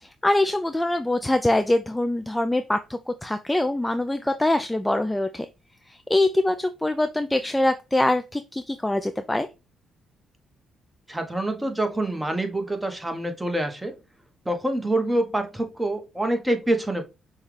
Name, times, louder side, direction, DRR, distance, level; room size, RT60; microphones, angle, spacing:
voice 1, 0.0-5.5 5.9-9.5, left 1 dB, 10° left, 8 dB, 0.3 m, -24 dB
voice 2, 11.1-13.9 14.4-17.0, right 1 dB, 10° right, 5 dB, 1.0 m, -26 dB
5.6 x 2.3 x 3.2 m, 0.27 s
cardioid pair, 90°, 0 cm